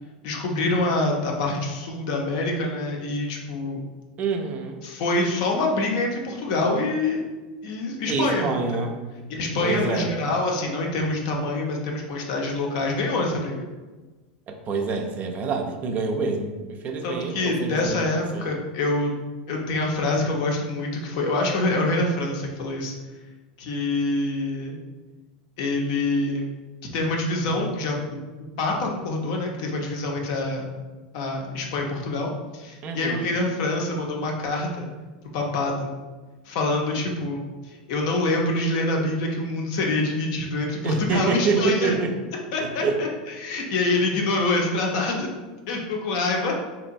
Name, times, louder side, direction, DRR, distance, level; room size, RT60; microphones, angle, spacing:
voice 1, 0.2-3.8 4.8-7.2 7.6-8.9 9.3-13.6 17.0-19.1 19.5-22.9 23.6-24.8 25.6-26.4 26.9-28.2 28.6-30.6 31.1-34.9 35.3-35.9 36.4-42.0 42.5-45.3 45.7-46.5, left 2 dB, 60° left, 0 dB, 0.6 m, -26 dB
voice 2, 4.2-4.8 8.1-9.0 9.6-10.1 14.5-18.0 18.3-18.5 32.8-33.3 40.8-42.1 42.6-43.0, right 4 dB, 35° right, 4 dB, 0.4 m, -26 dB
2.8 x 2.1 x 2.5 m, 1.3 s
hypercardioid pair, 105°, 4 cm